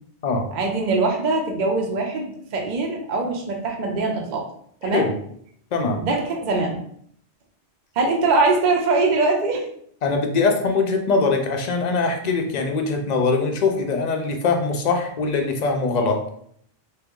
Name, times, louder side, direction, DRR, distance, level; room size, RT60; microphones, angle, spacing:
voice 1, 0.5-4.4 4.8-5.1 5.9-6.8 8.0-9.7, right 3 dB, 50° right, 1 dB, 0.7 m, -22 dB
voice 2, 10.0-16.2, left 4 dB, 50° left, 4 dB, 0.6 m, -22 dB
3.4 x 2.8 x 3.6 m, 0.64 s
omnidirectional pair, 1.1 m